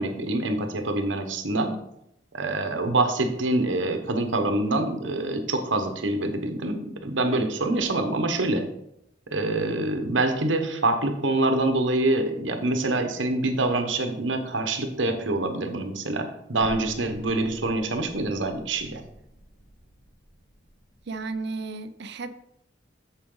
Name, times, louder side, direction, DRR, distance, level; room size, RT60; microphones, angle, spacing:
voice 1, 0.0-1.8 2.3-8.6 9.3-19.0, right 2 dB, 75° right, 6 dB, 1.2 m, -25 dB
Explosion, 16.6-21.4, equal, 60° left, 3.6 m, -47 dB
voice 2, 21.1-22.4, right 3 dB, 60° right, 11 dB, 0.6 m, -33 dB
8.6 x 7.4 x 3.9 m, 0.79 s
head